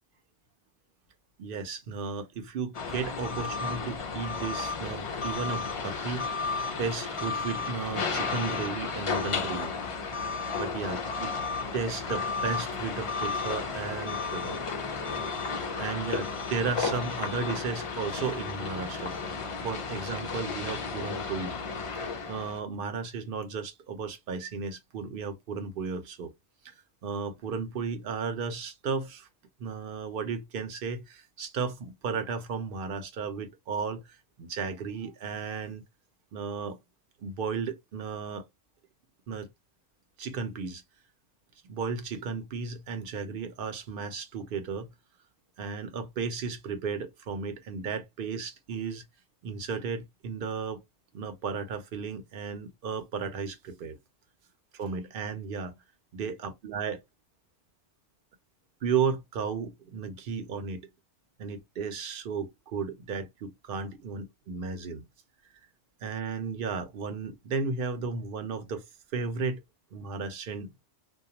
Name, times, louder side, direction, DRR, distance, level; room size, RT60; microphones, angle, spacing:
voice 1, 1.4-9.7 10.5-11.3 11.7-14.6 15.8-21.6 22.3-26.3 26.6-26.7 27.0-29.3 29.6-34.0 34.4-35.8 36.3-36.8 37.2-38.4 39.3-39.5 40.2-40.8 41.6-44.9 45.6-49.0 49.4-50.8 51.1-54.0 54.7-55.7 56.1-57.0 58.8-60.8 61.4-65.1 66.0-68.8 69.1-69.6 69.9-70.7, right 5 dB, 55° right, 0.8 m, -34 dB
sound 1, 2.7-22.6, left 4 dB, 55° left, 0.3 m, -33 dB
2.3 x 2.1 x 2.8 m
omnidirectional pair, 1.2 m